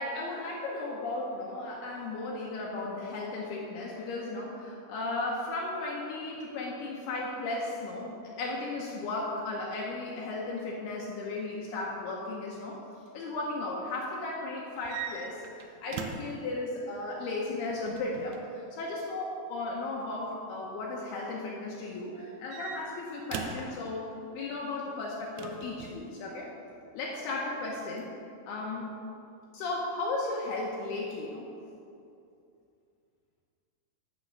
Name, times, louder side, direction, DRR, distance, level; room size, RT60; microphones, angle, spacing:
voice 1, 0.0-12.8 13.1-24.1 24.3-26.5 26.9-28.1 28.5-28.9 29.5-31.5, left 2 dB, 75° left, -3 dB, 2.7 m, -35 dB
sound 1, 14.8-16.4 17.7-18.5 19.9-20.3 22.1-23.7 25.4-26.0, right 6 dB, 80° right, 2.5 m, -41 dB
12.0 x 5.2 x 6.4 m, 2.6 s
omnidirectional pair, 5.2 m